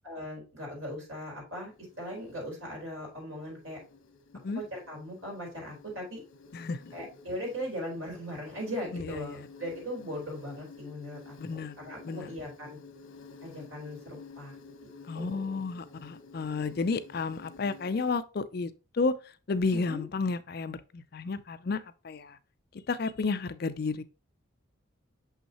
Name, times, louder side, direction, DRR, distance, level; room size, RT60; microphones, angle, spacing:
voice 1, 0.0-1.7 2.0-3.8 4.5-6.2 6.9-12.8 13.4-14.5 15.1-15.6 19.7-20.0, equal, 75° right, 4.0 m, -39 dB
Insect, 1.5-18.2, left 4 dB, 80° left, 1.1 m, -52 dB
voice 2, 6.5-6.9 8.9-9.5 11.4-11.7 12.0-12.3 15.1-19.2 19.5-22.4 22.9-24.0, left 4 dB, 50° left, 0.4 m, -32 dB
6.3 x 5.7 x 2.9 m
head